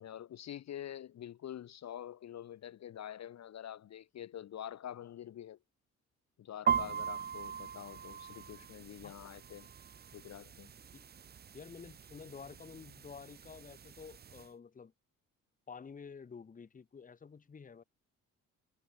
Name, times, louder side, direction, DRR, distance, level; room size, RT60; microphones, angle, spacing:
voice 1, 0.0-5.6 6.4-9.7 10.1-10.7, left 10 dB, 45° left, 0.8 m, -46 dB
sound 1, 6.7-14.5, right 7 dB, 25° right, 0.5 m, -40 dB
voice 2, 11.5-14.9 15.7-17.8, left 6 dB, 20° left, 0.8 m, -50 dB
hypercardioid pair, 50°, 37 cm